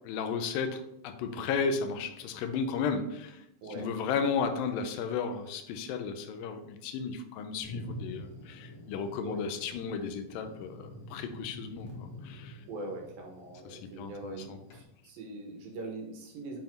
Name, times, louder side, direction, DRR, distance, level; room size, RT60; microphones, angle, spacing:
voice 1, 0.0-3.4 3.8-12.6 13.7-14.6, left 5 dB, 80° left, 7 dB, 2.3 m, -34 dB
Thunder, 7.6-14.8, left 1 dB, 55° left, 1.7 m, -46 dB
voice 2, 12.7-16.6, right 2 dB, 75° right, 1 dB, 2.9 m, -42 dB
7.6 x 3.6 x 4.5 m, 0.82 s
omnidirectional pair, 4.2 m